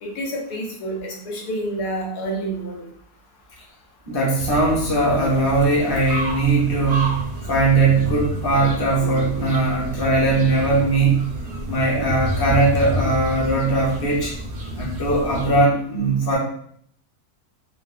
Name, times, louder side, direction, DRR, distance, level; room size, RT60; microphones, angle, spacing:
voice 1, 0.0-2.9, right 1 dB, 85° left, -2 dB, 1.3 m, -28 dB
voice 2, 4.1-11.3 11.7-14.3 14.7-16.4, right 2 dB, 20° left, -6 dB, 0.6 m, -20 dB
sound 1, 4.4-15.6, equal, 65° right, 0.7 m, -30 dB
3.8 x 2.2 x 2.2 m, 0.62 s
omnidirectional pair, 1.7 m